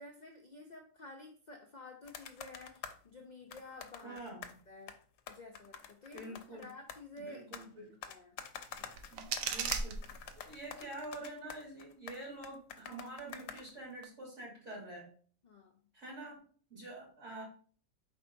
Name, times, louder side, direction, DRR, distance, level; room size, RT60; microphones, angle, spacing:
voice 1, 0.0-4.2 4.7-4.9 5.3-7.5 8.0-8.3 8.8-9.0 15.4-15.7, left 2 dB, 55° left, 1 dB, 0.5 m, -51 dB
sound 1, 2.0-3.0 3.5-4.6 4.9-7.7 8.0-14.0, left 8 dB, 75° left, 0.9 m, -48 dB
voice 2, 4.0-4.5 6.1-6.7 7.2-7.9 9.1-9.9 10.4-15.1 15.9-16.4 16.7-17.4, right 2 dB, 65° right, -4 dB, 2.5 m, -46 dB
sound 2, 8.7-10.7, right 6 dB, 80° right, 1.0 m, -38 dB
4.5 x 4.4 x 2.6 m, 0.43 s
omnidirectional pair, 1.4 m